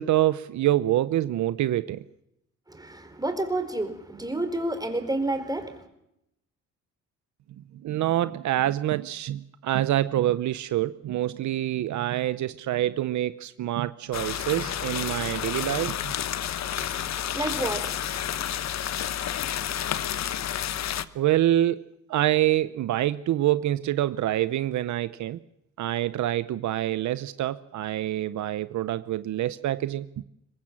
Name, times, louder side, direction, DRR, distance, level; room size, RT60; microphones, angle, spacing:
voice 1, 0.0-2.0 7.8-16.2 21.1-21.8 22.1-25.4 25.8-30.2, right 13 dB, 70° right, 0.8 m, -26 dB
voice 2, 2.7-5.9 16.7-18.3, right 2 dB, 10° right, 4.3 m, -30 dB
sound 1, 14.1-21.1, left 10 dB, 60° left, 1.1 m, -30 dB
23.5 x 20.0 x 7.4 m
cardioid pair, 90°, 30 cm